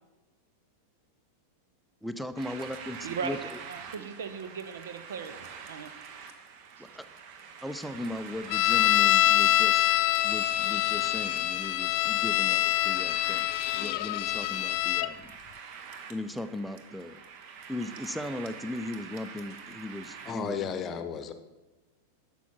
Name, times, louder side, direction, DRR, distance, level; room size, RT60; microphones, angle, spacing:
voice 1, 2.0-3.6 4.0-4.1 6.8-7.1 7.6-9.9 10.2-15.3 16.1-17.2 17.7-20.9, left 1 dB, ahead, 12 dB, 0.6 m, -38 dB
sound 1, 2.4-20.3, right 6 dB, 45° right, 1.0 m, -46 dB
voice 2, 3.0-3.4 3.7-5.9, right 6 dB, 60° right, 10 dB, 0.7 m, -37 dB
sound 2, 8.5-15.1, left 15 dB, 45° left, 0.4 m, -25 dB
voice 3, 20.3-21.3, left 6 dB, 30° left, 9 dB, 0.9 m, -33 dB
11.5 x 7.1 x 4.4 m, 1.1 s
figure-of-eight pair, 90°, 0 cm